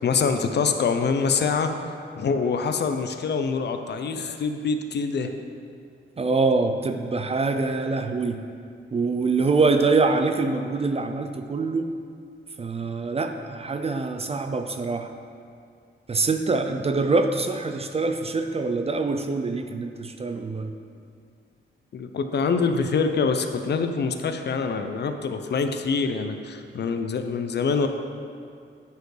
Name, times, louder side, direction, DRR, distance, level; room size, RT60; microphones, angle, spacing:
voice 1, 0.0-1.7 2.2-5.3 21.9-27.9, left 5 dB, 55° left, 7 dB, 0.5 m, -25 dB
voice 2, 6.2-8.4 8.9-11.9 12.6-15.1 16.1-20.7, right 3 dB, 30° right, 6 dB, 0.3 m, -24 dB
9.2 x 4.4 x 4.8 m, 2.3 s
wide cardioid pair, 165°, 21 cm